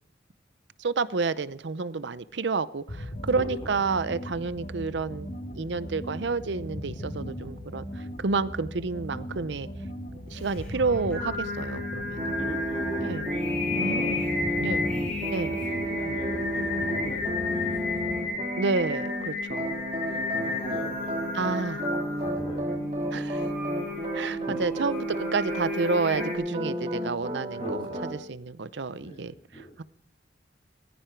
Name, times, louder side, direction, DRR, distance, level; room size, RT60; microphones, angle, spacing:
voice 1, 0.8-9.7 10.3-12.3 13.0-13.3 13.8-14.2 14.6-14.9 15.3-15.6 18.6-19.7 21.3-21.9 23.1-23.4 24.1-27.8 28.1-29.8, right 4 dB, 75° right, 16 dB, 0.6 m, -30 dB
sound 1, 2.9-18.2, equal, 50° left, 2.9 m, -38 dB
voice 2, 3.3-3.7 12.4-15.0 15.7-17.7 18.0-18.4 20.1-21.2 21.9-22.8 27.5-28.0 29.0-29.6, right 1 dB, 30° left, 0 dB, 7.1 m, -40 dB
Singing, 10.4-26.3, left 4 dB, 5° left, 7.4 m, -33 dB
sound 2, 12.2-19.2 19.5-28.1, right 1 dB, 35° right, 2.2 m, -32 dB
21.0 x 14.5 x 4.6 m, 0.67 s
head